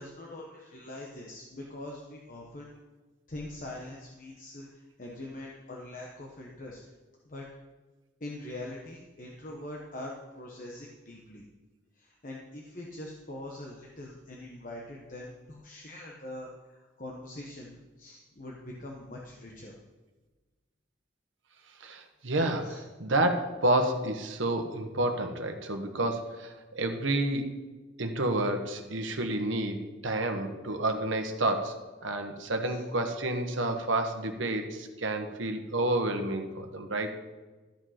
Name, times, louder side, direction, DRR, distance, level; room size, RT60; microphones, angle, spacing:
voice 1, 0.0-2.7 3.3-6.8 7.2-7.5 8.2-11.4 12.0-19.7 22.6-22.8 32.6-32.8, left 1 dB, 40° left, -2 dB, 1.1 m, -43 dB
voice 2, 21.8-27.4 28.0-37.2, right 1 dB, 75° right, 5 dB, 1.2 m, -30 dB
13.0 x 5.3 x 5.7 m, 1.3 s
head